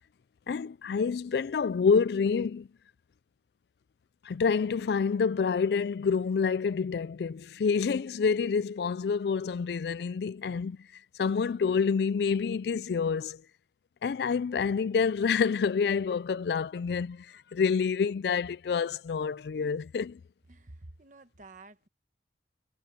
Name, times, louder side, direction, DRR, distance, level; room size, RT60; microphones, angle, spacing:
voice 1, 0.5-2.7 4.3-10.8 11.2-13.4 14.0-20.2, left 5 dB, 60° left, 0.3 m, -28 dB
voice 2, 20.5-21.9, right 2 dB, 45° right, 1.2 m, -50 dB
head